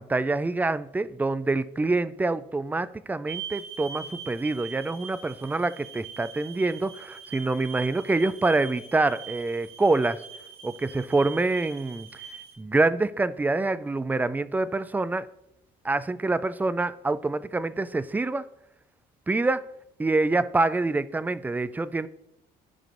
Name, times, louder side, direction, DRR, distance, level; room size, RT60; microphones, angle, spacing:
voice 1, 0.0-10.2 10.6-12.1 12.6-15.3 15.8-18.4 19.3-19.6 20.0-22.1, right 3 dB, 10° right, 0.3 m, -26 dB
sound 1, 3.3-12.6, right 7 dB, 70° right, 1.8 m, -42 dB
14.0 x 5.1 x 2.5 m
cardioid pair, 110°, 17 cm